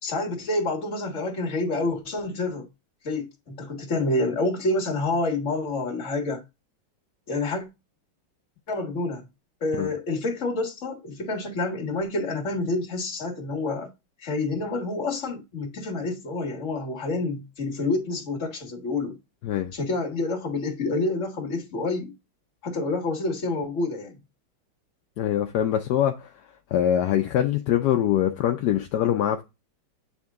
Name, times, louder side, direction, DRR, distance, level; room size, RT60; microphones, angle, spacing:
voice 1, 0.0-2.7 3.0-6.4 7.3-7.7 8.7-9.2 9.6-13.9 14.2-19.2 19.7-22.1 22.6-24.1, left 2 dB, 40° left, 1.6 m, -28 dB
voice 2, 25.2-26.4 26.7-29.4, left 10 dB, 70° left, 1.0 m, -23 dB
8.5 x 3.6 x 3.5 m
omnidirectional pair, 2.2 m